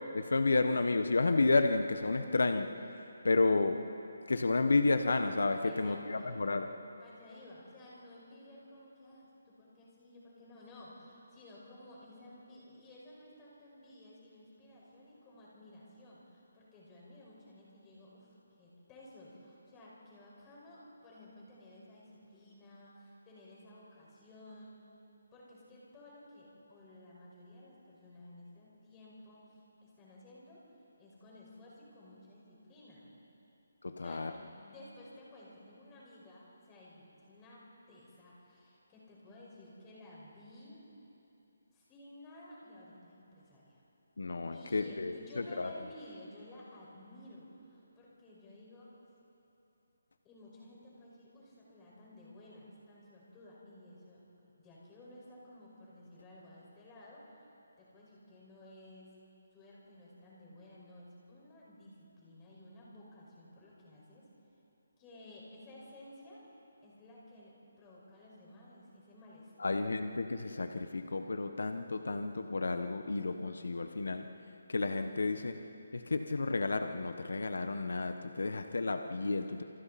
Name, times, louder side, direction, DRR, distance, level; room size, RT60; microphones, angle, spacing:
voice 1, 0.1-2.9 3.2-3.9 4.3-6.8 33.8-34.3 44.2-45.7 69.6-74.3 74.7-75.6 75.9-79.6, left 3 dB, 80° left, 7 dB, 1.3 m, -31 dB
voice 2, 5.6-6.3 7.0-18.3 18.6-24.8 25.3-30.6 31.0-33.1 34.0-40.8 41.7-43.8 44.5-48.9 50.2-57.4 57.8-59.1 59.5-64.3 65.0-66.4 66.8-69.8, left 1 dB, 15° left, -5 dB, 5.7 m, -54 dB
29.5 x 28.5 x 4.3 m, 2.9 s
hypercardioid pair, 170°, 0 cm